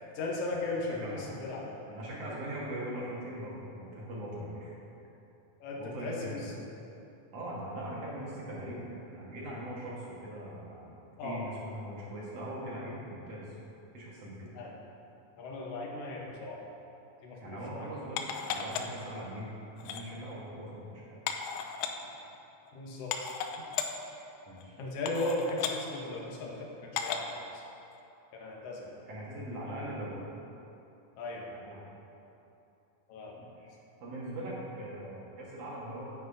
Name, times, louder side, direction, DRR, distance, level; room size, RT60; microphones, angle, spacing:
voice 1, 0.0-1.8 5.6-6.7 11.2-11.5 14.5-14.7 15.4-16.7 17.2-17.9 22.7-23.3 24.8-27.6 28.3-29.0 31.2-31.4 33.1-33.4, left 2 dB, 65° left, -2 dB, 1.7 m, -37 dB
voice 2, 0.9-1.3 1.9-4.7 5.8-6.4 7.3-10.9 11.2-13.4 13.9-14.5 17.4-19.5 19.8-21.0 24.5-24.7 29.1-30.1 31.5-31.9 33.4-33.7 34.0-36.1, right 1 dB, 55° right, -5 dB, 2.2 m, -41 dB
sound 1, 18.2-19.0 19.8-20.0 21.3-21.9 22.7-22.8 23.1-23.9 24.6-24.7 25.1-25.8 27.0-27.3 27.9-28.0, left 8 dB, 85° left, 2.2 m, -35 dB
9.5 x 9.3 x 2.7 m, 2.8 s
omnidirectional pair, 3.9 m